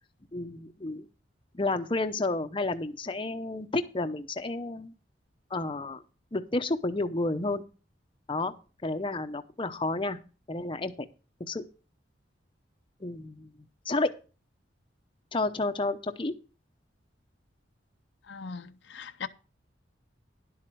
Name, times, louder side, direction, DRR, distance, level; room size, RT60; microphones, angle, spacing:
voice 1, 0.3-1.1 1.5-4.9 5.5-6.0 6.3-7.6 8.3-8.5 8.8-10.2 10.5-11.1 11.5-11.7 13.0-13.5 13.8-14.1 15.3-16.3, left 2 dB, 30° left, 0.7 m, -31 dB
voice 2, 18.3-19.3, left 5 dB, 75° left, 0.6 m, -39 dB
11.0 x 7.6 x 4.6 m
head